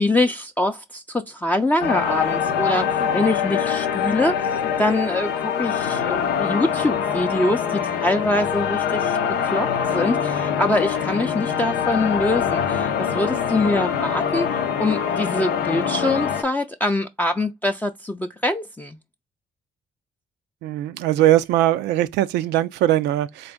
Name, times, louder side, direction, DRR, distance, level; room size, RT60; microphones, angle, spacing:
voice 1, 0.0-14.5 14.8-19.0, left 2 dB, 10° left, 0.4 m, -24 dB
sound 1, 1.8-16.4, left 8 dB, 90° left, 0.6 m, -24 dB
voice 2, 20.6-23.5, right 13 dB, 90° right, 0.4 m, -20 dB
3.9 x 2.5 x 3.5 m
cardioid pair, 70°, 17 cm